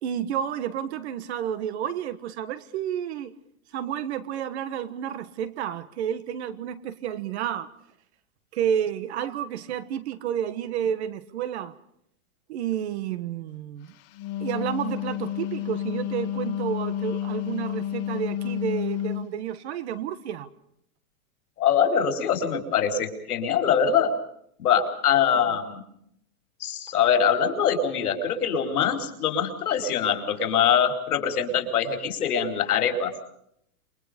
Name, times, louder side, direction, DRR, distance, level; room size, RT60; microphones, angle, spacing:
voice 1, 0.0-3.3 3.7-7.7 8.5-11.7 12.5-13.9 14.4-20.5, right 9 dB, 50° right, 1.5 m, -30 dB
Wind instrument woodwind instrument, 14.0-19.3, left 11 dB, 30° left, 1.6 m, -30 dB
voice 2, 21.6-24.1 24.6-25.8 26.6-33.1, left 7 dB, 85° left, 4.6 m, -23 dB
28.0 x 23.0 x 5.2 m
supercardioid pair, 170°, 44 cm